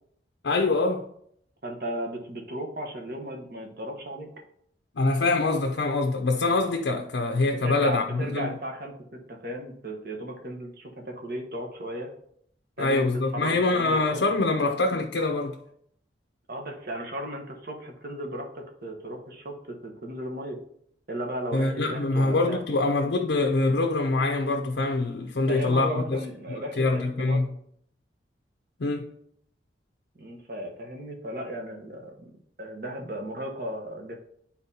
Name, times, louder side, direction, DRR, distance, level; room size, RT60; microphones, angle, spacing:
voice 1, 0.4-1.0 5.0-8.6 12.8-15.6 21.5-26.2 26.8-27.5 28.8-29.1, left 3 dB, 80° left, 0.6 m, -24 dB
voice 2, 1.6-4.3 7.5-8.9 9.3-12.1 12.8-13.1 13.3-14.2 16.5-20.6 21.1-22.6 25.5-27.5 30.2-32.3 32.6-34.2, equal, 55° right, 1.1 m, -35 dB
10.5 x 4.2 x 2.8 m
head